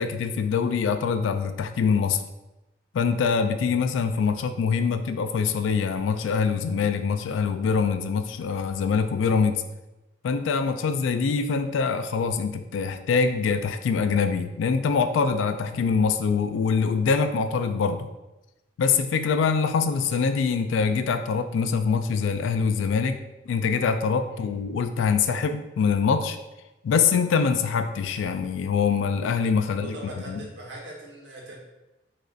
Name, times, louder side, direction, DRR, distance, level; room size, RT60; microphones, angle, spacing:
voice 1, 0.0-2.2 2.9-9.6 10.2-18.1 18.8-23.2 23.5-26.4 26.8-30.0 30.3-30.4, left 5 dB, 85° left, 8 dB, 0.3 m, -24 dB
voice 2, 29.6-31.6, right 1 dB, 70° right, -2 dB, 1.0 m, -41 dB
3.2 x 2.4 x 3.8 m, 1.0 s
head